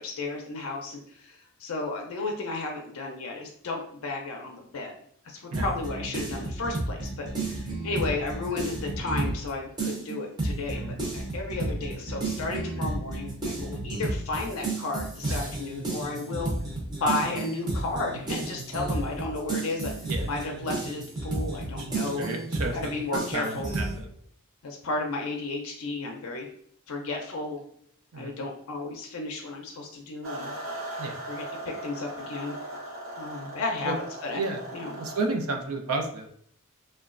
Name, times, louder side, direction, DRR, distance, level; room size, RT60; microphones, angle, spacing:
voice 1, 0.0-4.9 5.2-10.8 11.1-16.5 16.9-19.9 20.3-22.3 22.7-23.7 24.6-26.5 26.9-27.6 28.1-30.5 31.3-32.5 33.2-33.9 34.2-34.4 34.7-34.9, left 3 dB, 70° left, 1 dB, 0.4 m, -33 dB
sound 1, 5.5-9.5 9.8-24.0, right 2 dB, 20° right, 0.6 m, -32 dB
voice 2, 22.2-22.9 23.3-24.1 28.1-28.4 31.0-31.2 33.8-33.9 34.4-34.6 34.9-36.3, right 3 dB, 80° right, 3 dB, 0.5 m, -32 dB
sound 2, 30.2-35.3, right 1 dB, 65° right, 0.9 m, -38 dB
2.9 x 2.2 x 2.4 m, 0.66 s
head